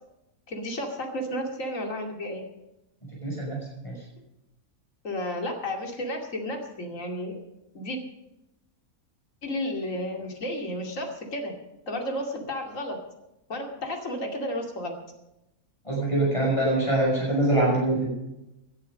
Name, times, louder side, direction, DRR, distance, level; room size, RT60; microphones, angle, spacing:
voice 1, 0.5-2.4 5.0-7.3 7.7-8.0 9.4-11.5 11.9-13.0 13.5-14.9, left 1 dB, 60° left, 2 dB, 2.9 m, -32 dB
voice 2, 3.2-3.9 15.8-18.1, right 1 dB, 20° left, -4 dB, 6.7 m, -24 dB
18.5 x 11.5 x 5.3 m, 0.93 s
omnidirectional pair, 1.5 m